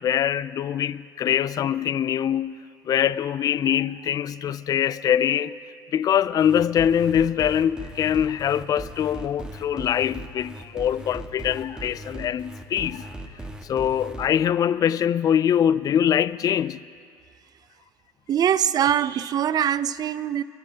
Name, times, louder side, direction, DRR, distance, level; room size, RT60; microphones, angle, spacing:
voice 1, 0.0-2.6 2.9-5.6 5.9-13.1 13.6-16.8, left 9 dB, 40° left, 0.4 m, -23 dB
sound 1, 6.4-14.3, right 1 dB, 10° right, 1.6 m, -38 dB
voice 2, 18.3-20.4, right 9 dB, 45° right, 0.5 m, -23 dB
26.5 x 13.0 x 2.8 m
supercardioid pair, 85°, 9 cm